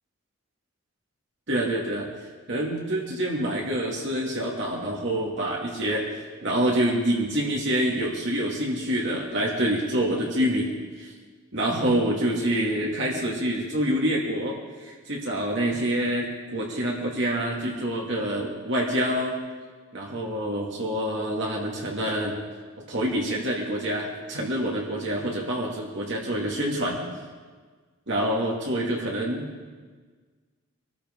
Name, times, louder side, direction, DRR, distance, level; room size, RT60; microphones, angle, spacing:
voice 1, 1.5-2.1 2.5-6.1 6.4-11.1 11.5-19.4 19.9-22.4 22.9-27.0 28.1-29.5, right 1 dB, 55° right, -2 dB, 2.3 m, -26 dB
23.5 x 13.5 x 3.8 m, 1.4 s
head